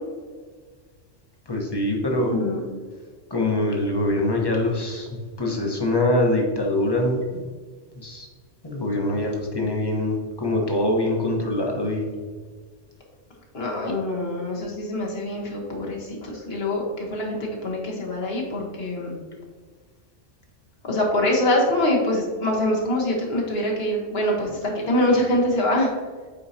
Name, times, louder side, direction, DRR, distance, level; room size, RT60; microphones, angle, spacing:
voice 1, 1.5-2.3 3.3-7.4 8.0-8.3 8.6-12.1, left 1 dB, 20° left, -1 dB, 1.1 m, -24 dB
voice 2, 2.3-2.6 13.5-19.2 20.9-25.9, left 1 dB, 55° left, -1 dB, 1.6 m, -24 dB
8.3 x 4.7 x 2.8 m, 1.5 s
omnidirectional pair, 1.3 m